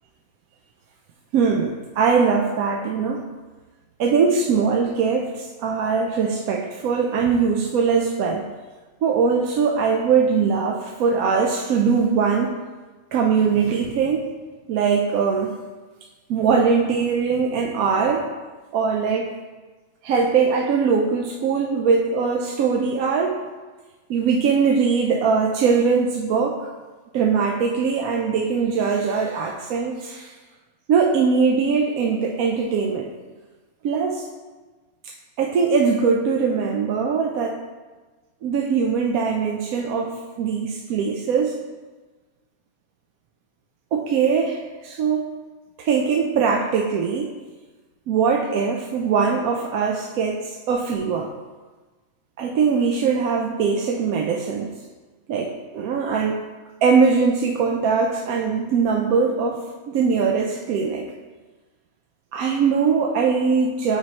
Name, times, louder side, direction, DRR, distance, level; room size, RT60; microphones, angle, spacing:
voice 1, 1.3-3.2 4.0-8.5 9.0-12.6 13.1-14.3 14.7-15.5 16.3-18.3 18.7-19.4 20.0-23.4 24.1-26.7 27.1-30.3 30.9-33.1 33.8-34.3 35.0-37.6 38.4-41.6 43.9-45.3 45.8-47.3 48.1-51.3 52.4-54.7 55.3-56.4 56.8-61.1 62.3-64.0, right 5 dB, 80° right, 0 dB, 1.0 m, -21 dB
8.6 x 4.4 x 2.9 m, 1.3 s
omnidirectional pair, 1.5 m